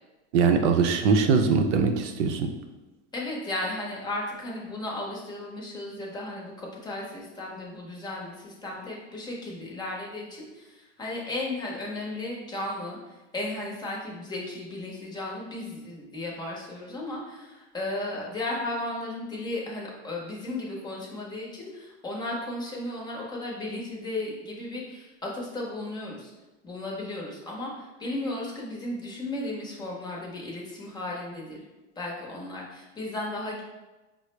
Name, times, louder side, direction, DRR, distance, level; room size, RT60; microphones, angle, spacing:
voice 1, 0.3-2.5, right 5 dB, 85° right, 6 dB, 0.6 m, -22 dB
voice 2, 3.1-13.0 13.3-26.3 26.6-31.6 32.0-33.6, left 2 dB, 10° left, -3 dB, 0.6 m, -35 dB
4.7 x 2.0 x 3.1 m, 1.1 s
supercardioid pair, 145°, 35 cm